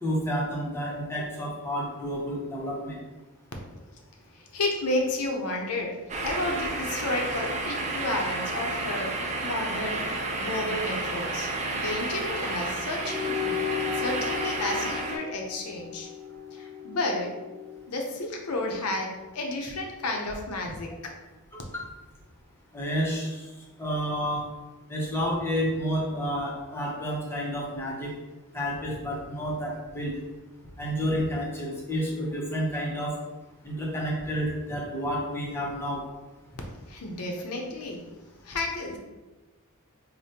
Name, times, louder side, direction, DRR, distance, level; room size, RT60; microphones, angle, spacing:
voice 1, 0.0-3.0 21.5-21.9 22.7-23.4 23.8-24.4 24.9-28.1 28.5-30.1 30.8-33.1 33.6-36.0, equal, 10° left, -3 dB, 0.6 m, -30 dB
voice 2, 4.5-9.1 9.4-10.1 10.3-11.5 11.8-13.6 13.9-16.1 16.6-17.3 17.9-21.1 36.9-38.1 38.4-39.0, left 2 dB, 80° left, 2 dB, 0.6 m, -31 dB
sound 1, 6.1-15.2, right 2 dB, 30° right, 0.3 m, -31 dB
sound 2, 13.0-17.8, left 8 dB, 55° right, 0.9 m, -35 dB
5.0 x 2.1 x 2.7 m, 1.1 s
head